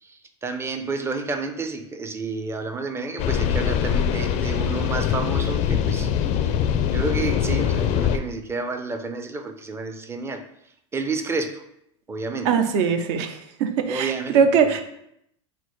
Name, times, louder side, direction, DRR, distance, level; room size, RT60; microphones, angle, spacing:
voice 1, 0.0-6.1 6.9-10.4 10.9-11.6 12.1-12.5 13.9-14.7, right 3 dB, 15° right, 7 dB, 0.4 m, -30 dB
sound 1, 3.2-8.2, left 8 dB, 50° left, 0.4 m, -23 dB
voice 2, 12.4-14.8, right 6 dB, 65° right, 8 dB, 0.6 m, -21 dB
4.3 x 2.1 x 4.5 m, 0.75 s
hypercardioid pair, 105°, 15 cm